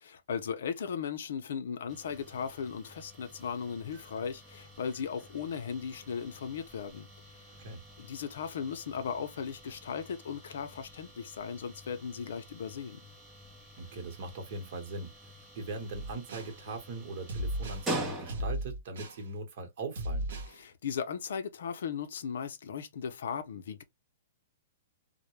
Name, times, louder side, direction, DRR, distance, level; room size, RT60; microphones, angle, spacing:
voice 1, 0.3-7.1 8.0-13.0 20.5-23.8, left 7 dB, 70° left, 0.5 m, -37 dB
sound 1, 1.9-18.7, right 1 dB, 15° right, 0.6 m, -45 dB
voice 2, 13.8-20.3, right 3 dB, 50° right, 1.0 m, -40 dB
sound 2, 15.9-16.5 17.3-17.9 18.3-19.2 19.9-20.5, equal, 70° right, 0.8 m, -35 dB
2.1 x 2.1 x 3.0 m
hypercardioid pair, 155°, 0 cm